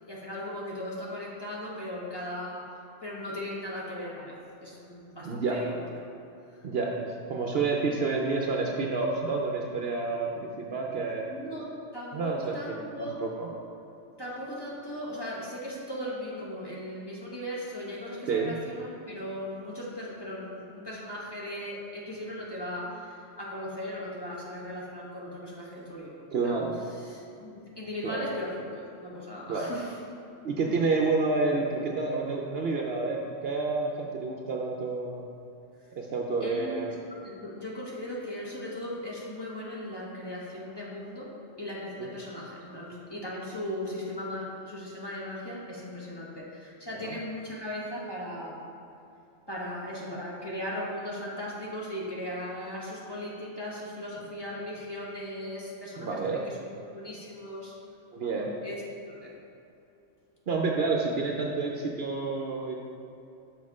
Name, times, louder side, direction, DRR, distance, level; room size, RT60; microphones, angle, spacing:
voice 1, 0.1-5.8 6.4-6.7 11.3-13.2 14.2-26.6 26.9-30.0 36.4-36.9 37.2-48.6 49.5-57.7 58.6-58.8 59.1-59.3, left 1 dB, 20° left, -6 dB, 1.3 m, -38 dB
voice 2, 5.2-5.6 6.6-11.3 12.1-13.5 18.3-18.5 26.3-26.7 28.0-28.2 29.5-29.7 30.4-35.2 36.0-36.9 47.0-47.2 56.0-56.4 58.1-58.5 60.5-62.7, right 4 dB, 60° right, 0 dB, 0.8 m, -29 dB
6.4 x 6.3 x 4.8 m, 2.7 s
omnidirectional pair, 1.3 m